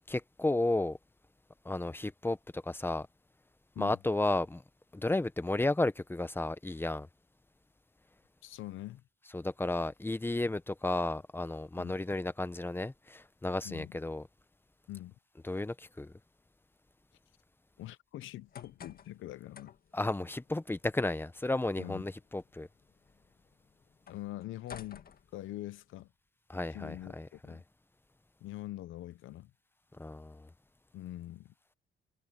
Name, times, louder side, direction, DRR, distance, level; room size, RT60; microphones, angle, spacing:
voice 1, 0.1-1.0 1.6-3.1 3.8-4.6 4.9-7.1 9.3-14.2 15.5-16.1 19.9-22.7 26.5-27.6 30.0-30.4, left 2 dB, 10° left, 1.1 m, -33 dB
voice 2, 8.4-9.0 11.8-12.0 13.6-14.0 14.9-15.2 17.8-19.8 21.8-22.0 24.1-25.1 25.3-26.1 26.7-27.6 28.4-29.5 30.9-31.5, left 15 dB, 80° left, 0.9 m, -44 dB
sound 1, 18.2-26.0, left 7 dB, 50° left, 1.8 m, -55 dB
cardioid pair, 90°, 20 cm